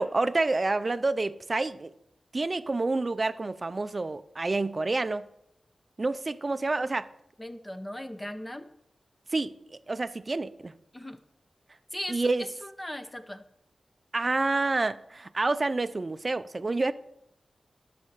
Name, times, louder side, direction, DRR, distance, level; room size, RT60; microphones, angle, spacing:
voice 1, 0.0-1.9 2.3-5.3 6.0-7.1 9.3-10.7 12.1-12.4 14.1-16.9, right 3 dB, 45° right, 0.5 m, -28 dB
voice 2, 7.4-8.7 10.9-11.2 11.9-13.4, left 1 dB, 15° left, 0.9 m, -38 dB
11.5 x 4.3 x 7.5 m
cardioid pair, 50°, 0 cm